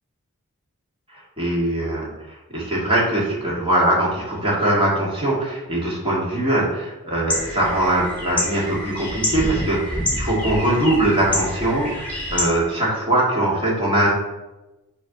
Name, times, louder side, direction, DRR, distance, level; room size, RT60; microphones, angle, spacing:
voice 1, 1.1-14.1, right 1 dB, 25° right, -5 dB, 2.3 m, -22 dB
sound 1, 7.3-12.4, left 1 dB, 5° left, 2.5 m, -27 dB
7.1 x 3.4 x 5.7 m, 1.0 s
head